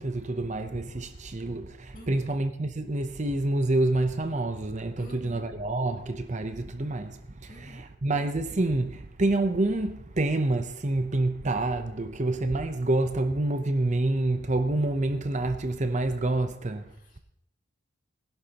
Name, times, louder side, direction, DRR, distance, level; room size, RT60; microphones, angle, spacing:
voice 1, 0.0-16.8, right 2 dB, 35° right, 0.7 m, -27 dB
voice 2, 1.9-2.3 5.0-5.5 7.5-7.9 16.9-17.2, left 1 dB, 40° left, 2.5 m, -49 dB
20.0 x 11.5 x 2.9 m
head